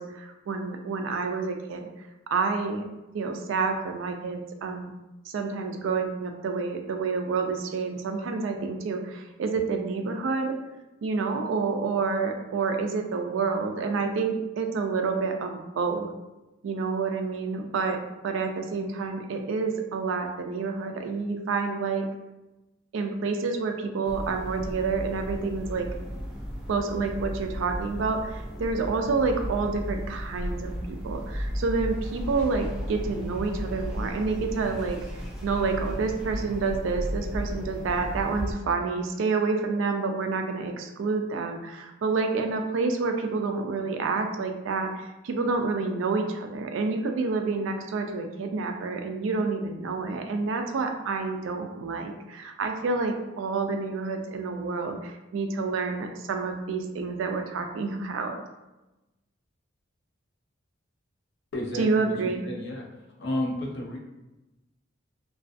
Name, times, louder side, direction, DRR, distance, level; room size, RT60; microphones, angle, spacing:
voice 1, 0.0-1.9 2.3-2.8 3.1-4.9 5.3-10.6 11.0-16.1 16.6-22.1 22.9-25.9 26.7-58.4 61.8-62.4, right 4 dB, 70° right, 5 dB, 0.3 m, -28 dB
sound 1, 24.0-38.5, equal, 5° right, 0.4 m, -35 dB
voice 2, 61.5-62.9 63.2-64.0, left 1 dB, 60° left, -1 dB, 0.5 m, -32 dB
2.4 x 2.3 x 2.4 m, 1.0 s
head